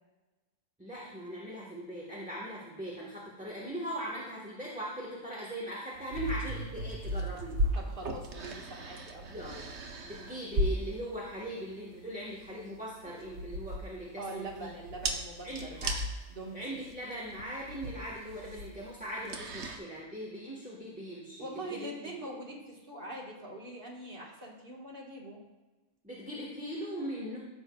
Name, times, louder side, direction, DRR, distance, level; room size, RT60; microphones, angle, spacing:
voice 1, 0.8-7.6 9.3-9.7 10.0-14.7 15.0-15.1 15.4-15.9 16.5-22.1 26.0-27.4, equal, 5° right, -5 dB, 1.2 m, -40 dB
sound 1, 6.0-19.8, equal, 65° right, 1.1 m, -37 dB
voice 2, 7.8-9.4 14.2-15.9 16.3-16.8 21.4-25.4, right 1 dB, 45° right, -2 dB, 1.7 m, -43 dB
14.5 x 6.2 x 2.3 m, 1.2 s
omnidirectional pair, 1.3 m